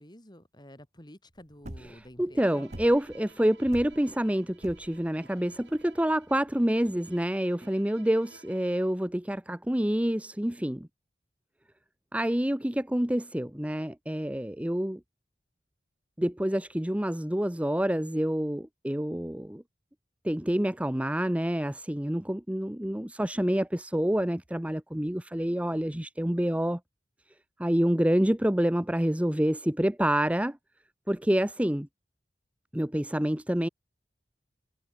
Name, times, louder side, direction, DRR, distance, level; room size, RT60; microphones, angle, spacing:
voice 1, 0.0-2.7, equal, 25° left, 6.3 m, -50 dB
sound 1, 1.4-7.3, right 1 dB, 40° right, 2.0 m, -45 dB
voice 2, 1.8-10.9 12.1-15.0 16.2-19.6 20.2-26.8 27.6-30.6 31.1-31.9 32.7-33.7, equal, 10° right, 0.8 m, -27 dB
Bowed string instrument, 2.4-9.1, right 4 dB, 90° right, 4.2 m, -56 dB
head